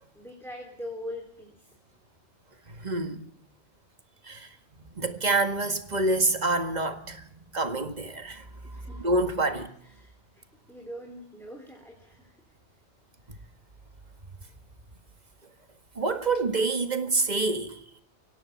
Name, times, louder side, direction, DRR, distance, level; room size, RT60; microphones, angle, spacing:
voice 1, 0.1-1.8 8.6-9.1 9.5-12.6, left 1 dB, ahead, 3.2 m, -43 dB
voice 2, 2.7-3.2 4.2-4.6 4.9-9.7 13.3-13.4 16.0-17.8, right 2 dB, 35° right, 1.9 m, -27 dB
24.0 x 17.5 x 7.1 m
omnidirectional pair, 1.2 m